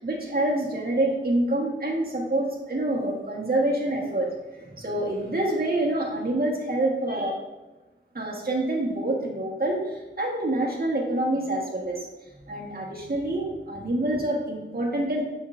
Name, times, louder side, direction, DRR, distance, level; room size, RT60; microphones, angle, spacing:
voice 1, 0.0-7.4 8.1-12.1 12.5-15.2, right 1 dB, 45° right, -3 dB, 1.3 m, -27 dB
7.2 x 5.4 x 2.5 m, 1.1 s
wide cardioid pair, 55°, 21 cm